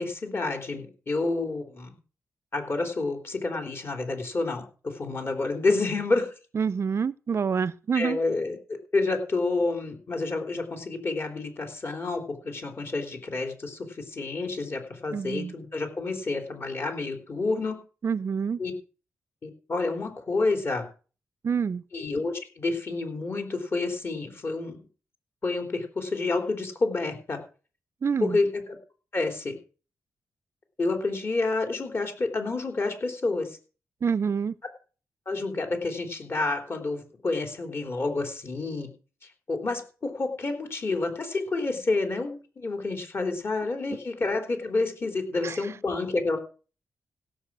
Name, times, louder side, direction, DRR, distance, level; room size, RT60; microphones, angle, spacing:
voice 1, 0.0-1.9 2.5-6.3 7.9-8.6 8.9-13.9 14.1-17.8 18.6-18.7 19.4-20.9 21.9-24.8 25.4-27.4 28.2-28.8 29.1-29.6 30.8-33.5 35.3-38.9 39.5-46.4, left 3 dB, 45° left, 3.5 m, -29 dB
voice 2, 6.5-8.2 15.1-15.5 18.0-18.6 21.4-21.8 28.0-28.4 34.0-34.5 45.4-45.6, right 6 dB, 50° right, 0.5 m, -27 dB
16.5 x 7.4 x 6.2 m
cardioid pair, 85°, 6 cm